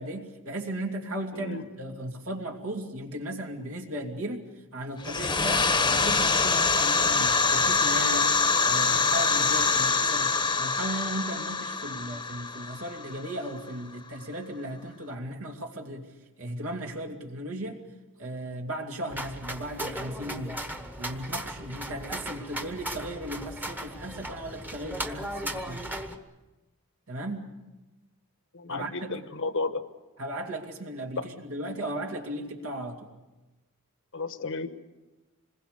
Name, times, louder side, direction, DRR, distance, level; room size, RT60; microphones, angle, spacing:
voice 1, 0.0-16.1 16.4-17.8 18.2-20.6 21.0-25.9 27.1-27.5 28.7-29.3 30.2-33.1, right 1 dB, 75° right, 1 dB, 2.7 m, -36 dB
voice 2, 1.3-1.6 28.5-29.8 34.1-34.7, left 3 dB, 60° left, 10 dB, 1.3 m, -33 dB
sound 1, 5.0-13.6, left 4 dB, 20° left, 1.1 m, -25 dB
sound 2, 19.1-26.2, right 1 dB, 10° right, 1.3 m, -37 dB
27.0 x 21.0 x 6.8 m, 1.1 s
head